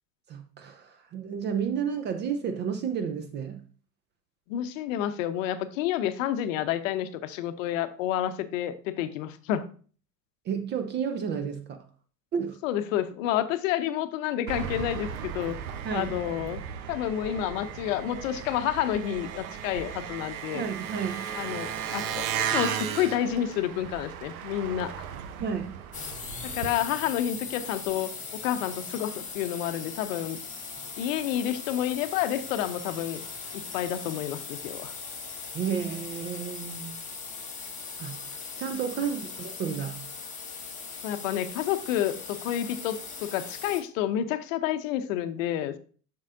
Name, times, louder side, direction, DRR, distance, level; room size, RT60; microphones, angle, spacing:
voice 1, 0.3-3.6 10.5-11.8 12.3-12.6 15.8-16.2 20.5-21.3 25.4-25.8 30.8-30.9 35.5-37.1 38.0-38.2 38.6-40.0, right 7 dB, 25° right, 0.4 m, -31 dB
voice 2, 4.5-9.7 12.6-15.6 15.9-16.6 16.9-20.6 21.3-24.9 26.5-30.4 31.0-33.2 33.5-34.9 41.0-45.8, left 11 dB, 55° left, 0.7 m, -29 dB
Engine, 14.5-26.7, right 8 dB, 60° right, 0.8 m, -35 dB
sound 1, 25.9-43.8, left 5 dB, 15° left, 1.7 m, -39 dB
7.2 x 6.2 x 2.5 m
figure-of-eight pair, 85°, 49 cm